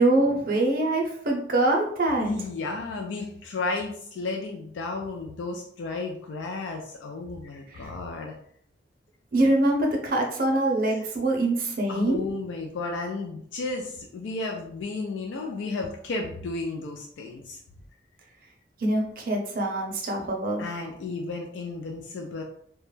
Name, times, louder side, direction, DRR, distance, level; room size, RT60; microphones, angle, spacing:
voice 1, 0.0-2.3 7.7-7.9 9.3-12.2 18.8-20.6, right 2 dB, 50° right, 1 dB, 0.5 m, -24 dB
voice 2, 2.2-8.3 10.9-11.0 11.9-17.6 20.6-22.4, left 3 dB, 90° left, 2 dB, 0.3 m, -33 dB
2.2 x 2.0 x 3.0 m, 0.65 s
head